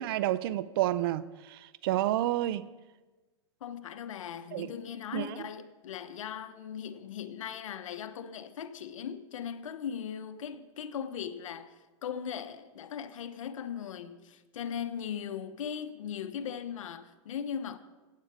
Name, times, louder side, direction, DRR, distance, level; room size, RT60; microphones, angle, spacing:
voice 1, 0.0-2.7 4.5-4.7 5.1-5.4, right 14 dB, 45° right, 0.5 m, -30 dB
voice 2, 3.6-17.8, left 8 dB, 80° left, 1.0 m, -39 dB
16.0 x 8.5 x 4.9 m
supercardioid pair, 150°, 16 cm